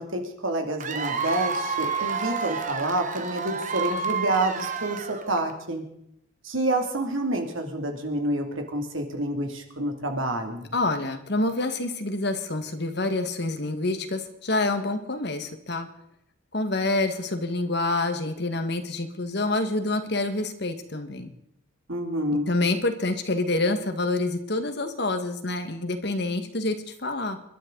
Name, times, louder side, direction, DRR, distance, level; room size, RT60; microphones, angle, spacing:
voice 1, 0.0-5.8 6.4-10.7 21.9-22.5, right 1 dB, 75° right, 4 dB, 2.7 m, -28 dB
Cheering / Applause / Crowd, 0.8-5.5, right 5 dB, 35° right, 1.2 m, -30 dB
voice 2, 10.7-15.9 16.5-21.3 22.5-27.4, left 2 dB, 55° left, 8 dB, 1.6 m, -27 dB
28.0 x 12.5 x 3.9 m, 0.76 s
head